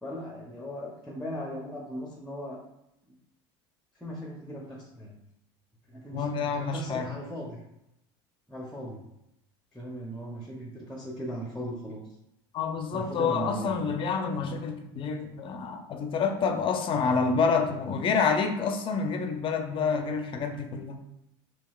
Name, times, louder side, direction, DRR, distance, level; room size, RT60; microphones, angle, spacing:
voice 1, 0.0-2.6 3.0-3.2 3.9-5.2 5.9-7.6 8.5-9.0 9.7-12.1 12.9-13.8, equal, 5° left, -2 dB, 0.6 m, -38 dB
voice 2, 6.1-7.1 12.5-21.0, left 5 dB, 40° left, 5 dB, 0.5 m, -28 dB
3.8 x 2.4 x 2.3 m, 0.86 s
supercardioid pair, 90°, 13 cm